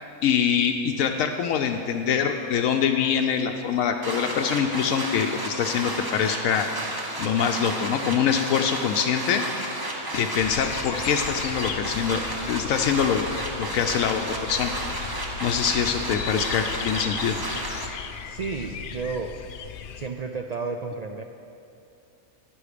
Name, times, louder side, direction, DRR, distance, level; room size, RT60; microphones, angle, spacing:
voice 1, 0.2-6.7 7.2-9.4 10.1-12.2 12.5-13.3 13.6-14.7 15.4-17.4, left 7 dB, 85° left, 4 dB, 1.0 m, -24 dB
sound 1, 4.0-17.9, right 1 dB, 20° right, 0.9 m, -32 dB
sound 2, 10.4-20.1, left 8 dB, 70° left, 0.5 m, -37 dB
voice 2, 18.2-19.3 20.0-21.2, right 4 dB, 80° right, 5 dB, 0.3 m, -32 dB
11.5 x 9.6 x 5.0 m, 2.7 s
omnidirectional pair, 1.4 m